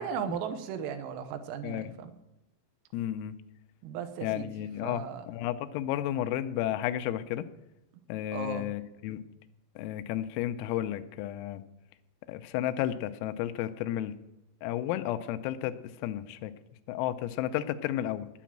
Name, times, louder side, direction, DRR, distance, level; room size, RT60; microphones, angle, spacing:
voice 1, 0.0-2.1 3.8-4.5 4.8-5.3 8.3-8.7, right 7 dB, 85° right, 8 dB, 3.7 m, -36 dB
voice 2, 2.9-3.3 4.2-7.4 8.1-9.2 9.8-11.6 12.3-14.1 14.6-15.7 16.0-16.5 16.9-18.3, left 12 dB, 90° left, 10 dB, 3.4 m, -32 dB
10.0 x 9.2 x 7.4 m, 0.94 s
omnidirectional pair, 6.0 m